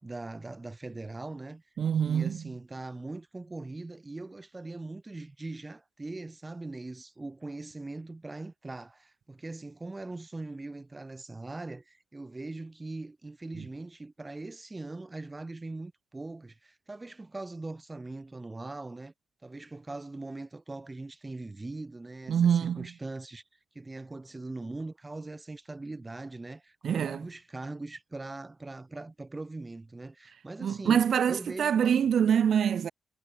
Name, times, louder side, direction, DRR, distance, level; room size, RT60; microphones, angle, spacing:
voice 1, 0.0-1.6 2.0-19.1 19.4-23.4 23.7-32.1, right 2 dB, 15° right, 7.6 m, -41 dB
voice 2, 1.8-2.4 22.3-22.9 26.8-27.2 30.6-32.9, right 8 dB, 55° right, 5.8 m, -25 dB
cardioid pair, 135°, 0 cm